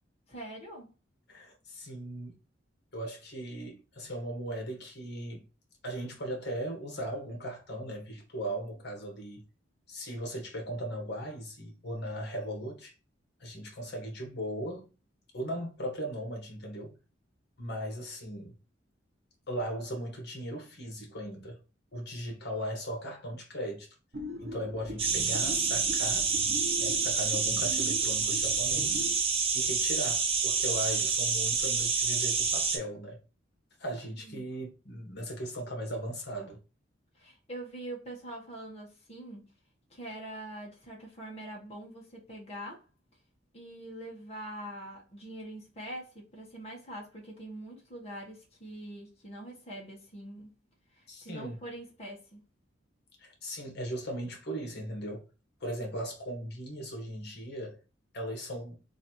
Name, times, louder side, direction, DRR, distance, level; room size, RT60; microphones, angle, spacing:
voice 1, 0.3-0.9 34.2-34.4 37.2-39.5 39.9-42.8 43.5-50.5 50.9-52.4, right 1 dB, 35° left, 1.3 m, -44 dB
voice 2, 1.3-2.4 2.9-5.5 5.8-9.4 9.9-12.9 13.4-14.9 15.3-17.0 17.6-18.6 19.5-21.6 21.9-23.9 24.4-26.3 26.8-29.0 29.5-33.2 33.8-36.6 51.1-51.6 53.2-55.3 55.6-57.8 58.1-58.8, equal, 60° left, 1.3 m, -38 dB
sound 1, 24.1-29.2, equal, 60° right, 1.2 m, -41 dB
sound 2, 25.0-32.8, right 5 dB, 30° right, 0.8 m, -28 dB
3.1 x 2.7 x 4.3 m
head